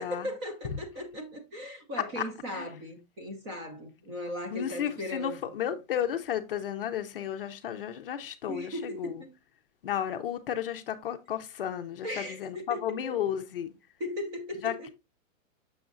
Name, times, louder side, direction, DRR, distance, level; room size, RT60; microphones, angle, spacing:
voice 1, 0.0-5.4 8.5-9.3 12.0-13.2 14.0-14.9, left 1 dB, 20° right, 0.6 m, -38 dB
voice 2, 4.5-9.1 9.8-13.7 14.6-14.9, left 9 dB, 45° left, 0.5 m, -33 dB
6.8 x 6.3 x 2.5 m
hypercardioid pair, 170°, 41 cm